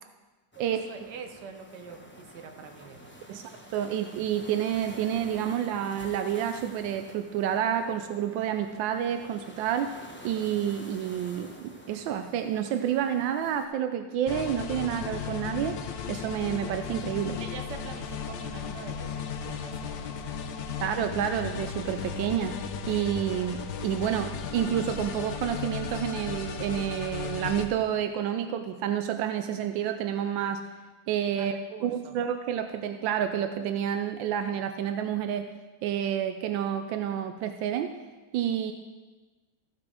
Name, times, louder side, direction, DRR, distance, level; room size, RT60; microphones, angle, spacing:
sound 1, 0.5-13.6, equal, 10° left, 0.5 m, -49 dB
voice 1, 0.6-3.4 17.4-20.0 20.3-20.8 31.3-32.2, right 5 dB, 65° right, 5 dB, 1.5 m, -44 dB
voice 2, 3.3-10.0 10.2-15.8 16.1-17.4 20.8-22.6 22.9-30.6 31.1-31.6 31.8-35.5 35.8-37.9 38.3-38.7, right 9 dB, 85° right, 8 dB, 1.3 m, -29 dB
sound 2, 14.3-27.7, left 7 dB, 80° left, 1.5 m, -35 dB
14.5 x 6.1 x 4.9 m, 1.3 s
omnidirectional pair, 2.0 m